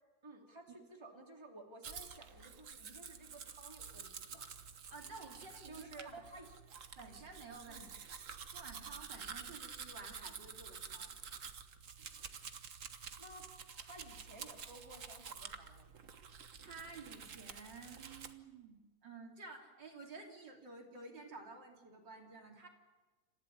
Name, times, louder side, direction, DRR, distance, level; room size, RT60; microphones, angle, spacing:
voice 1, 0.2-4.5 5.6-6.5 7.7-7.9 13.2-13.5 13.8-15.9, right 2 dB, 15° right, 1 dB, 3.1 m, -54 dB
Domestic sounds home sounds, 1.8-18.3, right 6 dB, 45° right, 1.5 m, -50 dB
voice 2, 4.9-6.2 7.0-7.9 8.5-11.2 16.6-22.7, right 3 dB, 70° right, 1 dB, 3.7 m, -52 dB
27.5 x 15.0 x 10.0 m, 1.2 s
omnidirectional pair, 2.0 m